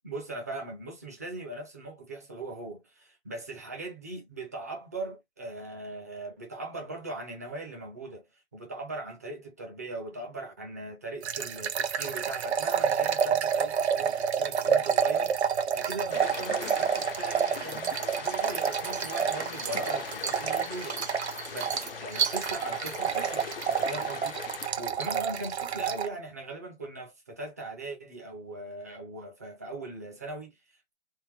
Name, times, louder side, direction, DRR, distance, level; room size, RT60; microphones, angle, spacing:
voice 1, 0.0-30.9, right 2 dB, 15° right, 0.5 m, -40 dB
sound 1, 11.2-26.1, right 7 dB, 75° right, 0.8 m, -29 dB
sound 2, 16.1-24.7, left 7 dB, 60° left, 0.8 m, -40 dB
3.6 x 2.9 x 3.2 m
hypercardioid pair, 165°, 33 cm